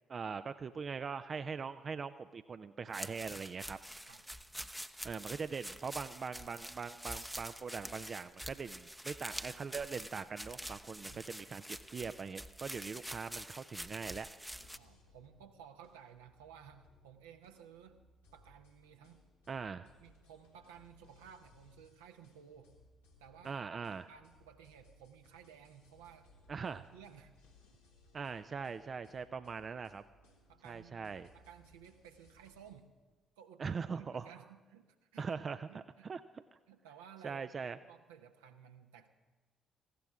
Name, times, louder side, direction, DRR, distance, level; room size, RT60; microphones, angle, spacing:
voice 1, 0.1-3.8 5.0-14.3 19.5-19.9 23.4-24.1 26.5-26.8 28.1-30.0 30.6-31.3 33.6-34.3 35.2-36.2 36.5-36.6 37.2-37.8, right 5 dB, 40° right, 11 dB, 0.5 m, -41 dB
sound 1, 2.9-14.8, equal, 5° right, 0.7 m, -46 dB
voice 2, 11.1-11.6 14.8-18.0 18.3-19.2 20.0-22.7 23.2-23.7 24.1-27.4 30.5-32.9 33.4-35.3 35.7-36.1 36.7-39.1, right 8 dB, 75° right, 5 dB, 0.9 m, -56 dB
sound 2, 14.5-32.7, left 2 dB, 85° left, 2.3 m, -66 dB
19.0 x 15.5 x 3.6 m, 1.4 s
figure-of-eight pair, 45°, 0 cm